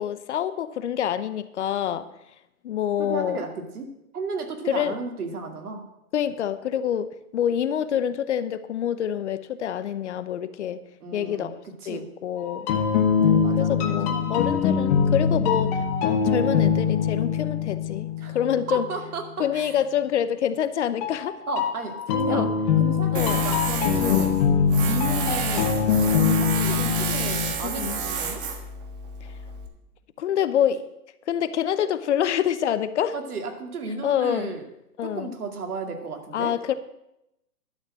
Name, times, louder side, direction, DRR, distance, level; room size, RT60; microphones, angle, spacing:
voice 1, 0.0-2.0 2.6-3.4 4.7-5.0 6.1-10.8 11.1-11.6 11.9-12.7 13.2-18.9 19.4-21.3 22.3-22.5 23.1-23.4 24.0-24.3 27.6-28.0 30.2-30.8 31.3-33.1 34.0-34.5 35.0-35.3 36.3-36.7, left 9 dB, 50° left, 13 dB, 0.8 m, -26 dB
voice 2, 3.0-5.8 11.0-11.5 11.8-12.1 13.4-14.5 18.2-18.4 18.7-19.8 21.5-22.5 22.8-24.4 24.8-25.7 26.0-28.4 33.1-34.6 35.0-36.5, right 4 dB, 75° right, 4 dB, 2.4 m, -34 dB
sound 1, 12.5-19.1 21.0-27.5, left 7 dB, 25° left, 1.1 m, -23 dB
Tools, 23.1-29.7, right 5 dB, 35° right, 1.6 m, -30 dB
11.5 x 6.5 x 7.5 m, 0.85 s
hypercardioid pair, 145°, 45 cm